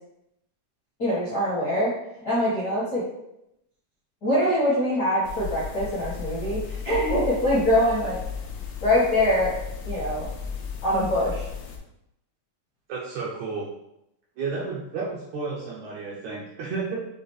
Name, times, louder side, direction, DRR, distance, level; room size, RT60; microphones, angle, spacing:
voice 1, 1.0-1.9 2.2-3.0 4.2-8.2 8.8-9.6 9.8-10.3 10.8-11.5, left 1 dB, 50° left, -10 dB, 1.1 m, -23 dB
sound 1, 5.2-11.8, left 6 dB, 75° left, 1.8 m, -34 dB
voice 2, 12.9-13.7 14.4-17.0, right 4 dB, 80° right, -4 dB, 1.7 m, -32 dB
6.8 x 2.4 x 3.1 m, 0.83 s
omnidirectional pair, 3.8 m